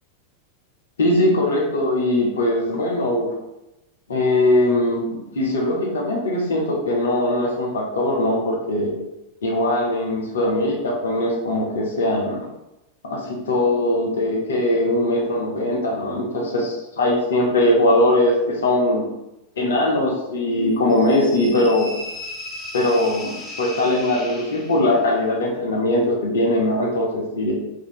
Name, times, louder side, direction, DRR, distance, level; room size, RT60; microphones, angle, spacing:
voice 1, 1.0-3.3 4.1-8.9 9.4-12.5 13.0-19.0 19.6-21.9 22.7-27.5, left 1 dB, 65° left, -1 dB, 0.8 m, -21 dB
sound 1, 20.9-25.1, left 1 dB, 10° left, 1.1 m, -36 dB
3.2 x 2.8 x 3.9 m, 0.92 s
figure-of-eight pair, 90°, 0 cm